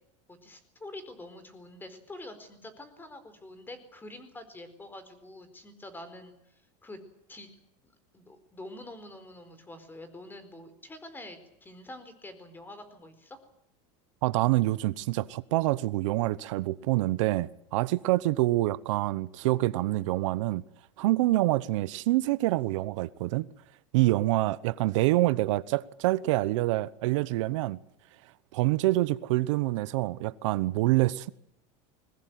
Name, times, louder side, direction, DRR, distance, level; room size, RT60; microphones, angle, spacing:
voice 1, 0.3-7.0 7.3-7.5 8.1-13.4, left 1 dB, 15° left, 4.4 m, -46 dB
voice 2, 14.2-20.6 21.0-23.5 23.9-27.8 28.5-31.3, right 18 dB, 80° right, 0.9 m, -26 dB
21.5 x 20.0 x 9.3 m
supercardioid pair, 135°, 16 cm